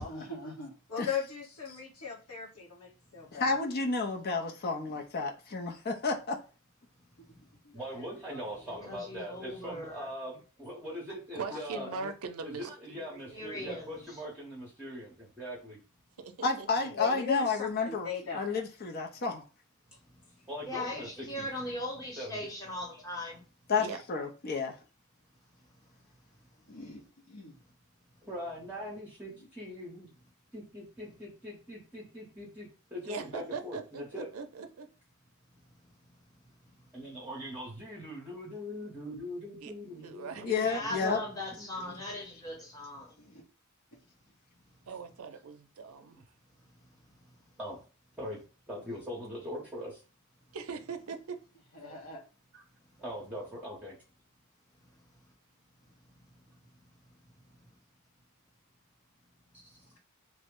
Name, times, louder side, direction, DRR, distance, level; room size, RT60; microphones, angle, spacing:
voice 1, 0.1-0.7 4.8-5.0 7.6-7.8 26.7-27.6 29.4-29.5 39.8-40.0 43.2-43.4 51.7-52.2, right 1 dB, 70° left, 0.9 m, -46 dB
voice 2, 0.9-3.6 7.7-8.0 8.3-8.4 8.7-8.9 11.5-12.1 16.9-18.5, left 7 dB, 90° left, 1.4 m, -38 dB
voice 3, 3.3-6.4 16.4-18.1 18.3-19.4 23.7-24.7 40.4-41.2, left 4 dB, 45° left, 0.5 m, -31 dB
voice 4, 7.7-11.9 12.4-15.8 20.5-21.1 21.4-21.5 22.2-22.4 28.2-30.1 30.5-34.3 36.9-42.2 46.1-46.2 47.6-47.8 48.2-48.4 48.7-50.0 53.0-54.0 59.6-59.8, equal, 5° right, 0.8 m, -42 dB
voice 5, 8.6-10.1 13.3-14.2 20.6-23.4 40.6-43.1, left 1 dB, 15° left, 1.0 m, -39 dB
voice 6, 11.3-13.4 16.2-16.7 23.8-24.0 33.0-34.9 39.6-39.7 40.0-40.6 44.9-46.2 50.5-51.4, right 5 dB, 75° right, 0.5 m, -41 dB
3.0 x 2.1 x 3.5 m
head